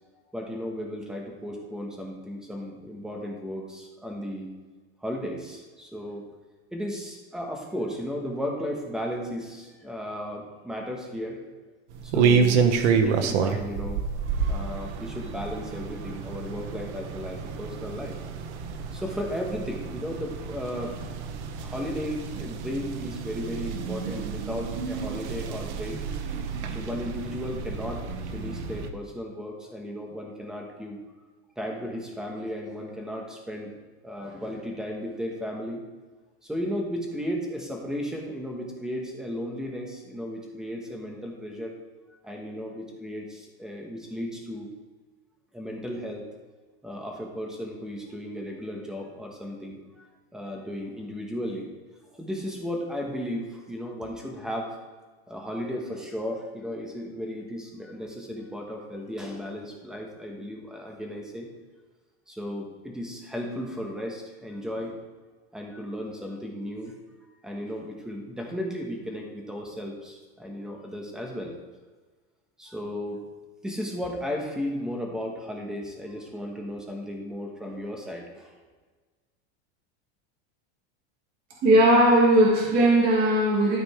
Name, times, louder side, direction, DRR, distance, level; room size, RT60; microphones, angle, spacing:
voice 1, 0.3-4.5 5.0-6.2 6.7-11.4 12.0-14.0 14.5-18.2 18.9-21.1 21.6-26.0 26.7-28.0 28.3-31.0 31.6-33.7 34.0-35.8 36.4-41.7 42.2-44.7 45.5-46.3 46.8-51.7 52.0-54.8 55.3-61.5 62.3-65.0 65.5-66.9 67.4-71.5 72.6-73.2 73.6-78.5, equal, ahead, 0 dB, 1.1 m, -35 dB
sound 1, 11.9-28.9, right 6 dB, 85° right, 1.0 m, -29 dB
voice 2, 81.6-83.8, right 1 dB, 30° right, -4 dB, 2.1 m, -18 dB
12.5 x 5.1 x 4.9 m, 1.4 s
supercardioid pair, 175°, 33 cm